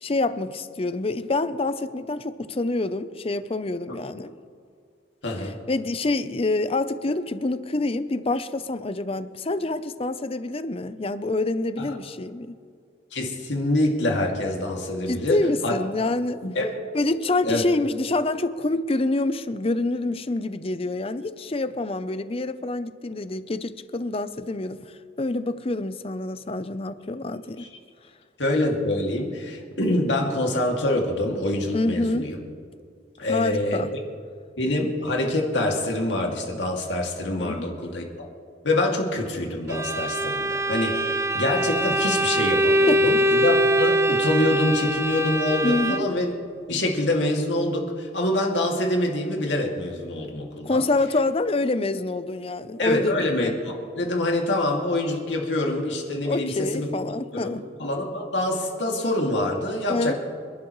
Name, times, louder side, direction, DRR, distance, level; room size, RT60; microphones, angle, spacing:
voice 1, 0.0-4.3 5.7-12.5 15.1-16.4 16.9-27.7 31.7-32.3 33.3-33.9 37.4-37.7 42.9-43.0 45.6-46.1 50.6-53.1 56.3-57.6 59.9-60.1, left 2 dB, 35° left, 0.6 m, -26 dB
voice 2, 5.2-5.5 11.8-12.0 13.1-15.7 16.4-16.7 17.4-17.6 27.6-27.7 28.4-32.4 33.2-33.8 34.6-38.3 38.6-46.3 46.7-50.8 52.8-56.9 57.3-60.1, left 1 dB, 85° left, 2.4 m, -25 dB
Bowed string instrument, 39.7-46.3, right 1 dB, 15° right, 0.5 m, -23 dB
27.0 x 11.5 x 3.1 m
head